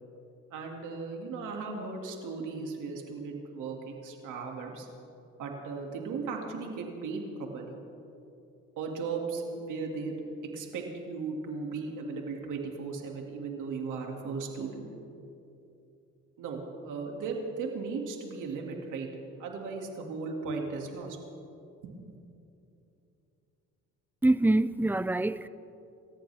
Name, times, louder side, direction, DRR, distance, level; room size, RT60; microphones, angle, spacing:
voice 1, 0.5-4.9 5.4-7.8 8.8-10.2 10.5-14.9 16.4-19.1 19.4-21.2 21.8-21.9, right 4 dB, 85° right, 2.4 m, -36 dB
voice 2, 24.2-25.5, right 2 dB, 5° right, 0.5 m, -25 dB
28.0 x 14.5 x 3.5 m
cardioid pair, 90°, 30 cm